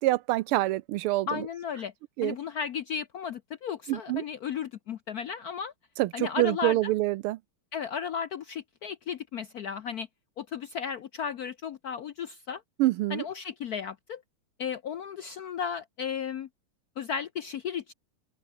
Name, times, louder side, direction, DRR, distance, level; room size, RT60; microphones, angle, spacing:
voice 1, 0.0-1.5 2.2-2.4 3.9-4.2 6.0-7.4 12.8-13.2, right 17 dB, 90° right, 1.5 m, -26 dB
voice 2, 1.3-1.9 2.2-5.7 6.1-6.9 7.7-10.1 10.4-12.6 13.1-14.2 14.6-16.5 17.0-17.9, left 7 dB, 65° left, 0.9 m, -34 dB
open air
omnidirectional pair, 2.4 m